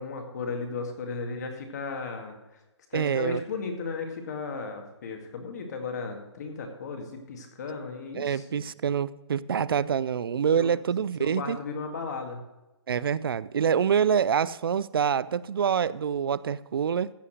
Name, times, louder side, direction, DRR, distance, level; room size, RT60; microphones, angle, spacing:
voice 1, 0.0-2.4 2.9-8.7 10.6-10.7 11.2-12.4, left 4 dB, 35° left, 2.1 m, -35 dB
voice 2, 2.9-3.4 8.1-11.6 12.9-17.1, right 7 dB, 55° right, 0.4 m, -26 dB
15.0 x 5.6 x 6.4 m
hypercardioid pair, 170°, 15 cm